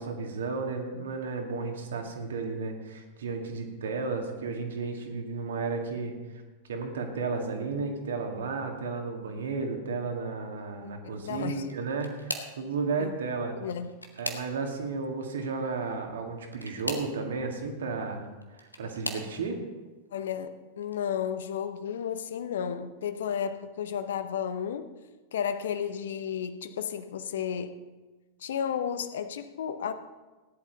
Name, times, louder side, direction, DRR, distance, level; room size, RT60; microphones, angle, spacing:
voice 1, 0.0-6.1 6.7-13.5 14.2-18.2 18.5-19.6, right 4 dB, 65° right, 3 dB, 2.2 m, -33 dB
voice 2, 10.8-11.7 13.0-13.2 13.6-13.9 20.1-24.9 25.3-27.7 28.4-29.9, left 8 dB, 60° left, 11 dB, 0.9 m, -33 dB
sound 1, 11.6-12.6 13.6-14.9 16.5-17.2 18.2-19.3 20.1-20.4 20.8-21.0 22.3-22.4, left 1 dB, 85° left, 1.4 m, -38 dB
17.0 x 11.0 x 4.1 m, 1.2 s
figure-of-eight pair, 90°, 0 cm